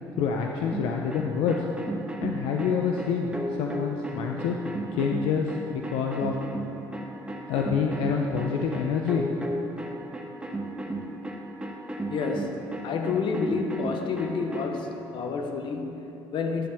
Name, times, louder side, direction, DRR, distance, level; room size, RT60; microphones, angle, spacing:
voice 1, 0.2-1.7 2.2-4.5 4.9-6.3 7.5-9.3, left 6 dB, 80° left, 2 dB, 0.6 m, -27 dB
sound 1, 0.7-14.7, right 1 dB, 10° right, 1.2 m, -34 dB
voice 2, 12.1-16.7, left 4 dB, 60° left, 5 dB, 0.9 m, -29 dB
10.5 x 8.4 x 3.5 m, 2.9 s
supercardioid pair, 75°, 9 cm